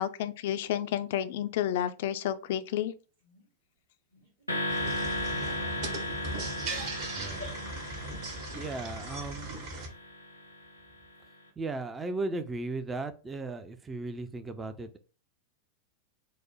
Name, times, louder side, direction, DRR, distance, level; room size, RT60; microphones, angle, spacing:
voice 1, 0.0-2.9, left 11 dB, 55° left, 0.4 m, -31 dB
sound 1, 0.8-1.4 1.9-2.1 2.5-2.8 3.1-3.5 4.1-4.5 4.9-5.1 5.8-6.2 6.5-7.8, equal, 65° right, 1.6 m, -49 dB
sound 2, 4.5-10.9, left 1 dB, 90° left, 0.9 m, -36 dB
sound 3, 4.7-9.9, right 3 dB, 45° right, 1.1 m, -39 dB
voice 2, 7.2-7.5 8.6-9.5 11.6-15.0, right 3 dB, 15° right, 0.5 m, -36 dB
4.8 x 2.1 x 4.0 m
figure-of-eight pair, 90°, 0 cm